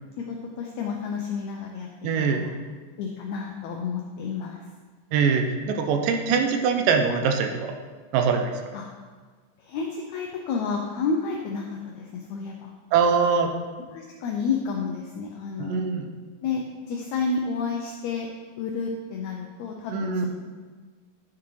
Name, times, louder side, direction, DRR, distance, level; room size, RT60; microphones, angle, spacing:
voice 1, 0.2-2.5 3.0-4.6 8.7-8.9 9.6-12.7 13.9-15.8 16.4-18.3 18.6-20.3, left 5 dB, 90° left, 1 dB, 1.6 m, -30 dB
voice 2, 2.0-2.4 5.1-7.7 8.1-8.5 12.9-13.5 15.6-16.1 19.9-20.3, right 5 dB, 85° right, 4 dB, 2.2 m, -23 dB
9.7 x 5.8 x 3.1 m, 1.4 s
omnidirectional pair, 3.9 m